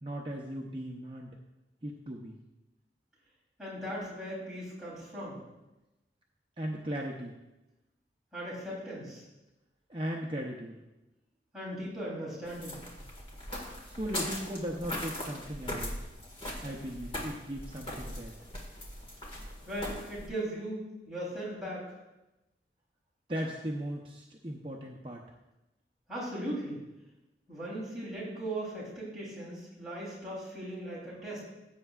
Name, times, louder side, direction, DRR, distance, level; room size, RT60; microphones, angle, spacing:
voice 1, 0.0-1.3 1.8-2.4 6.6-7.3 9.9-10.8 13.9-15.9 16.6-18.3 23.3-25.2, equal, 30° right, -1 dB, 0.7 m, -37 dB
voice 2, 3.6-5.4 8.3-9.2 11.5-12.8 19.7-21.8 26.1-26.8 27.5-31.4, right 1 dB, 5° right, -8 dB, 3.3 m, -38 dB
sound 1, 12.4-20.3, left 1 dB, 30° left, 1.8 m, -40 dB
16.0 x 8.0 x 2.4 m, 0.98 s
head